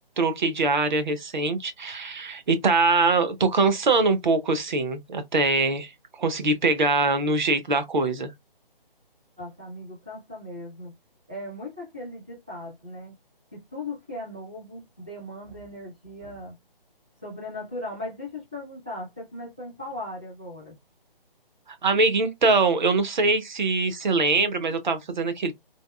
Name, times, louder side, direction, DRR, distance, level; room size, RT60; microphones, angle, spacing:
voice 1, 0.2-5.9 6.2-8.3 21.8-25.5, right 3 dB, 50° right, 0.8 m, -23 dB
voice 2, 9.4-10.9 11.3-13.1 13.5-16.5 17.2-20.8, left 1 dB, 10° right, 0.4 m, -38 dB
3.4 x 2.3 x 2.2 m
hypercardioid pair, 160°, 29 cm